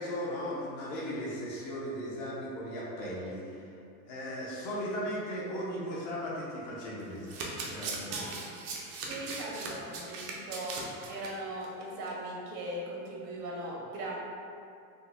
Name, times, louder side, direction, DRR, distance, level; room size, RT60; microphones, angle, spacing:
voice 1, 0.0-3.7 4.0-7.4 7.6-8.3, equal, 45° left, -5 dB, 0.8 m, -37 dB
Domestic sounds home sounds, 7.0-11.3 11.6-11.8 12.1-12.2, right 4 dB, 40° right, 0.4 m, -39 dB
voice 2, 9.1-10.7 11.1-14.2, right 1 dB, 80° right, -3 dB, 1.0 m, -39 dB
3.8 x 2.6 x 2.5 m, 2.5 s
supercardioid pair, 165°, 44 cm